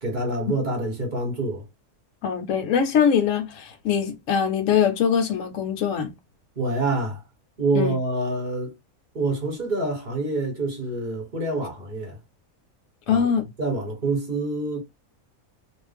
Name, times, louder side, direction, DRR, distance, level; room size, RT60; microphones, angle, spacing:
voice 1, 0.0-1.6 6.6-7.2 7.6-8.7 9.1-12.2 13.1-13.3 13.6-14.8, right 2 dB, 35° right, 1.1 m, -26 dB
voice 2, 2.2-6.1 7.7-8.0 13.1-13.4, left 7 dB, 70° left, 0.8 m, -22 dB
2.4 x 2.0 x 3.3 m
omnidirectional pair, 1.6 m